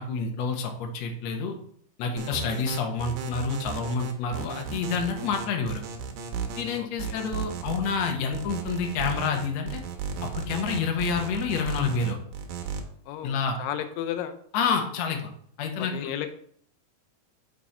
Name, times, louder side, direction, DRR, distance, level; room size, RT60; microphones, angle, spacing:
voice 1, 0.0-1.6 2.0-5.8 6.6-9.8 10.2-12.2 13.2-13.6 14.5-15.2 15.6-16.1, left 5 dB, 65° left, 3 dB, 2.0 m, -28 dB
voice 2, 2.2-2.6 6.8-7.2 13.1-14.4 15.8-16.3, left 10 dB, 90° left, 9 dB, 2.3 m, -34 dB
sound 1, 2.2-12.8, right 6 dB, 85° right, 2.6 m, -34 dB
6.1 x 5.9 x 4.2 m, 0.62 s
omnidirectional pair, 3.8 m